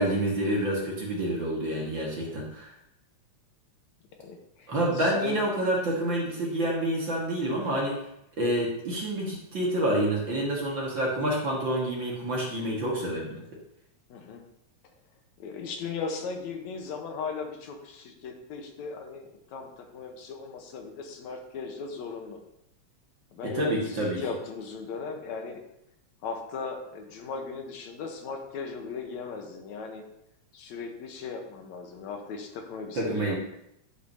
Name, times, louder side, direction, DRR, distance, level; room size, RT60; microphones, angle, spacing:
voice 1, 0.0-2.7 4.7-8.0 8.4-13.4 23.4-24.2 33.0-33.4, right 1 dB, 45° right, -3 dB, 2.1 m, -28 dB
voice 2, 4.2-5.4 14.1-14.4 15.4-22.4 23.3-25.6 26.2-30.0 30.5-33.4, left 5 dB, 75° left, 4 dB, 2.3 m, -37 dB
11.0 x 8.1 x 2.8 m, 0.81 s
omnidirectional pair, 3.3 m